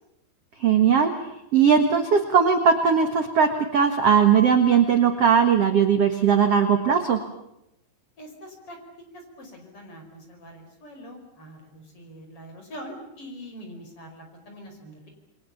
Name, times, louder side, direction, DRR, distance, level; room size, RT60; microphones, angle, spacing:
voice 1, 0.6-1.1 1.5-7.2, right 7 dB, 65° right, 6 dB, 1.5 m, -19 dB
voice 2, 8.2-8.8 9.1-15.1, equal, 30° left, 3 dB, 5.6 m, -43 dB
29.0 x 22.5 x 7.1 m, 0.83 s
omnidirectional pair, 5.3 m